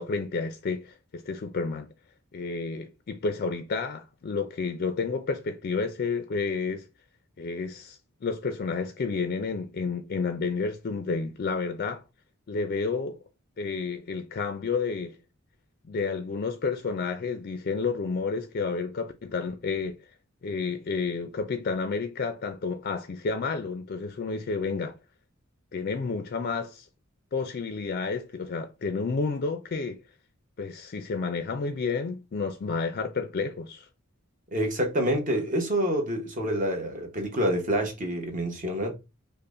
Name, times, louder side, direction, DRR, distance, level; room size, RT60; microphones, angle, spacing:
voice 1, 0.0-1.9 2.3-6.8 7.4-12.0 12.5-13.2 13.6-15.2 15.9-20.0 20.4-25.0 25.7-26.9 27.3-30.0 30.6-33.9, left 4 dB, 45° left, 0.4 m, -30 dB
voice 2, 34.5-38.9, equal, 40° right, 1.0 m, -27 dB
5.3 x 2.1 x 2.5 m
head